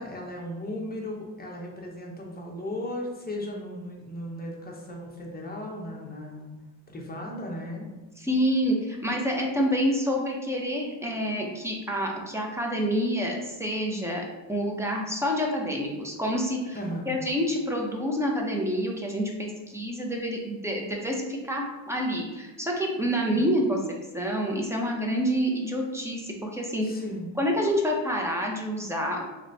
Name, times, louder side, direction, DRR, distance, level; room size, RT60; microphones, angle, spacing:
voice 1, 0.0-6.5 6.9-7.9 16.7-17.1 23.3-23.5 26.8-27.3, left 1 dB, 20° left, -1 dB, 0.9 m, -36 dB
voice 2, 8.2-16.8 17.1-23.8 24.1-26.9 27.4-29.2, equal, 5° right, -1 dB, 0.7 m, -28 dB
3.3 x 3.0 x 3.9 m, 1.2 s
cardioid pair, 105°, 47 cm